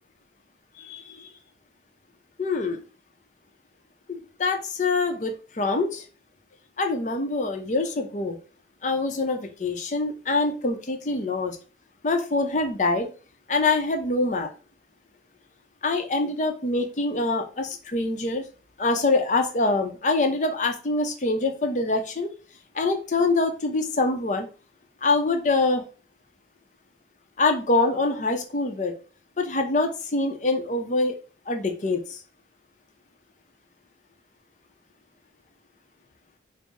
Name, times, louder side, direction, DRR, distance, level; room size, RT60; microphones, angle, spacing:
voice 1, 0.8-1.3 2.4-2.8 4.1-6.0 6.8-8.4 8.8-11.6 12.0-13.1 13.5-14.5 15.8-18.5 18.8-22.3 22.7-24.5 25.0-25.8 27.4-28.9 29.4-31.2 31.5-32.2, left 3 dB, 45° left, 5 dB, 0.5 m, -25 dB
3.9 x 2.0 x 3.6 m, 0.37 s
head